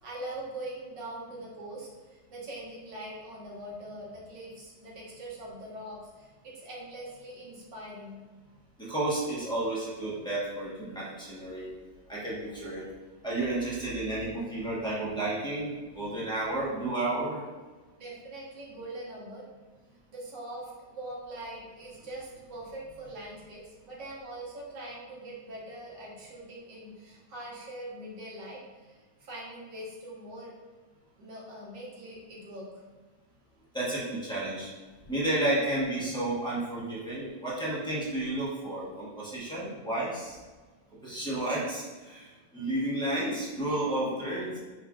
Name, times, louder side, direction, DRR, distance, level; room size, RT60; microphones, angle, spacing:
voice 1, 0.0-8.2 18.0-19.5 20.1-30.5 31.2-32.7, right 1 dB, 90° right, -5 dB, 1.9 m, -42 dB
voice 2, 8.8-11.7 12.1-12.9 13.2-17.4 33.7-34.7 35.1-40.4 41.0-44.6, right 1 dB, 5° left, -9 dB, 0.8 m, -31 dB
5.8 x 3.0 x 2.4 m, 1.3 s
omnidirectional pair, 1.9 m